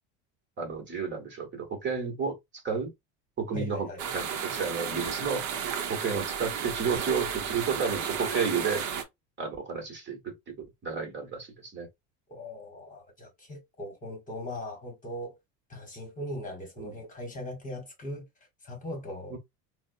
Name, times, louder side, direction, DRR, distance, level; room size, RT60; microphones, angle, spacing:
voice 1, 0.6-2.9 3.4-3.9 4.1-5.4 5.9-8.9 9.4-10.5 10.8-11.9 16.8-16.9 19.3-19.4, right 5 dB, 30° right, 1.1 m, -31 dB
voice 2, 3.5-4.0 12.3-15.4 15.7-18.2 18.6-19.3, left 1 dB, 20° left, 1.2 m, -39 dB
sound 1, 4.0-9.0, right 7 dB, 55° right, 0.8 m, -33 dB
4.0 x 2.1 x 2.5 m
cardioid pair, 135°, 35 cm